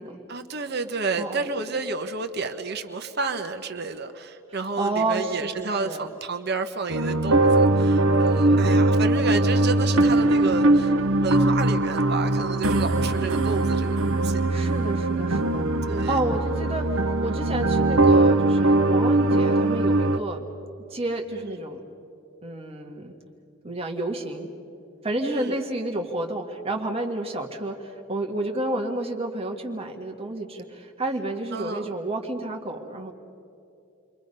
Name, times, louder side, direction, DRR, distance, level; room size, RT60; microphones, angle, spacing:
voice 1, 0.3-10.9 11.2-14.7 15.9-16.2 21.3-21.6 25.2-25.6 31.5-31.9, right 4 dB, 50° right, 6 dB, 1.1 m, -31 dB
voice 2, 4.6-6.0 8.4-8.8 14.5-20.4 20.9-21.8 22.4-23.1 23.6-24.5 25.0-33.1, right 2 dB, 25° right, 2 dB, 1.8 m, -30 dB
sound 1, 6.9-20.2, right 2 dB, 75° right, 0.9 m, -21 dB
29.5 x 23.5 x 5.5 m, 2.7 s
head